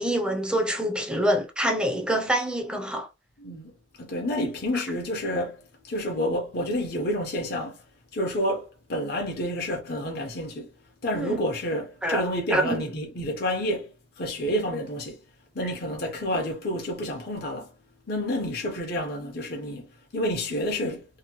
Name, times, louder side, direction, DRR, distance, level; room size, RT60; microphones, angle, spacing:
voice 1, 0.0-3.1 4.7-4.8 11.1-11.4 12.0-12.2 12.5-12.8, right 1 dB, 5° right, 0.4 m, -26 dB
voice 2, 3.4-3.7 4.0-7.8 8.1-10.7 11.0-15.2 15.5-17.7 18.1-21.1, equal, 50° left, 0.7 m, -29 dB
2.8 x 2.1 x 2.9 m
head